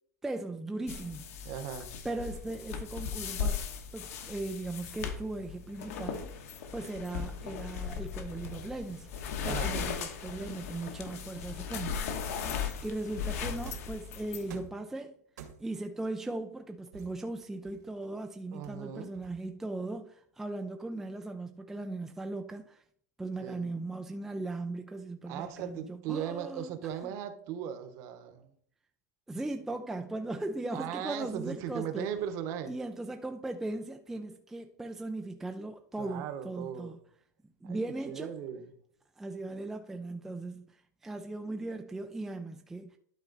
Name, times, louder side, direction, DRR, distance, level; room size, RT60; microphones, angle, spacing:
voice 1, 0.2-1.5 2.0-3.6 3.9-6.4 6.7-12.0 12.8-15.1 15.6-22.8 23.2-26.7 27.0-27.1 29.3-32.1 32.7-37.0 37.6-38.4 39.2-43.0, right 2 dB, 5° right, 0.3 m, -38 dB
sound 1, 0.9-14.5, left 6 dB, 60° left, 1.3 m, -37 dB
voice 2, 1.4-1.9 9.4-9.7 18.5-19.1 23.4-23.7 25.3-28.4 30.7-32.7 36.0-36.9 37.6-37.8 38.1-38.7, right 9 dB, 35° right, 1.0 m, -38 dB
sound 2, 13.7-14.0 14.5-14.9 15.4-15.9 16.9-18.1 18.6-19.6, right 8 dB, 75° right, 2.0 m, -49 dB
12.0 x 4.1 x 4.0 m
supercardioid pair, 160°, 9 cm